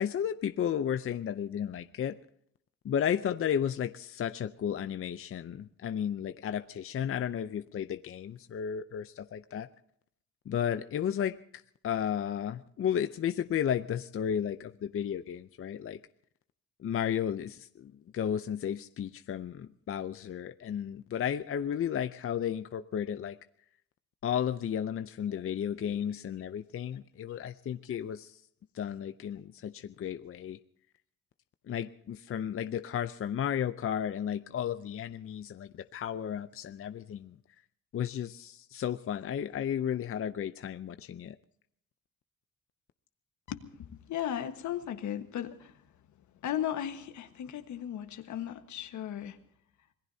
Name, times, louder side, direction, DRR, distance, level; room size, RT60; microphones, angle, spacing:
voice 1, 0.0-2.2 2.8-9.7 10.5-16.0 16.8-23.4 24.2-28.4 28.7-30.6 31.7-37.4 37.9-41.4, left 9 dB, 45° left, 11 dB, 0.6 m, -33 dB
voice 2, 25.3-26.1 43.5-45.8 46.4-49.4, left 10 dB, 75° left, 8 dB, 1.5 m, -37 dB
26.5 x 18.5 x 2.8 m, 0.67 s
cardioid pair, 90°, 30 cm